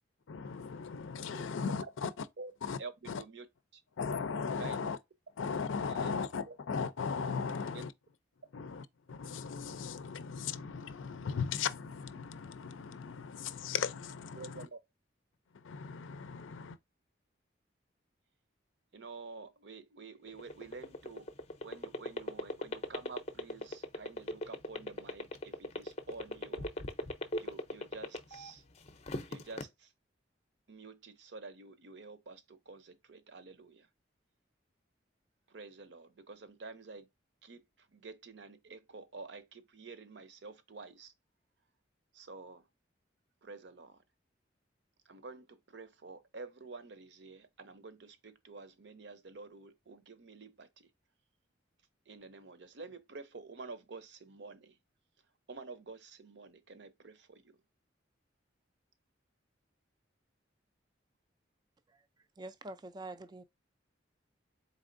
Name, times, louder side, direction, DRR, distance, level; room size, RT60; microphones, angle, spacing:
voice 1, 0.3-2.3 2.6-2.8 3.1-3.2 4.0-5.0 5.4-7.9 8.5-14.7 15.5-16.8, left 5 dB, 85° left, 0.5 m, -37 dB
voice 2, 14.4-14.8 18.9-21.3 21.6-26.7 27.4-28.6 29.3-29.9 30.7-33.9 35.5-37.1 37.4-37.6 37.9-41.1 42.1-42.6 43.4-44.0 45.1-50.9 52.1-54.8 55.5-57.4, right 4 dB, 60° right, 0.7 m, -49 dB
sound 1, 20.3-28.5 28.9-29.6, left 1 dB, 35° left, 0.5 m, -37 dB
voice 3, 62.4-63.4, right 2 dB, 20° right, 0.3 m, -45 dB
4.1 x 3.5 x 2.5 m
head